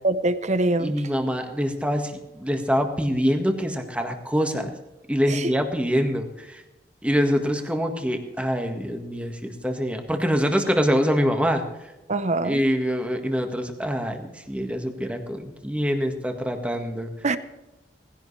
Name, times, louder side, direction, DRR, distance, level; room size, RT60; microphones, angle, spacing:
voice 1, 0.0-0.9 5.3-5.5 12.1-12.6 17.2-17.4, right 2 dB, 40° right, 0.9 m, -23 dB
voice 2, 0.8-4.7 5.1-6.6 7.0-11.6 12.4-17.1, equal, 5° right, 1.7 m, -25 dB
19.5 x 16.0 x 3.4 m
head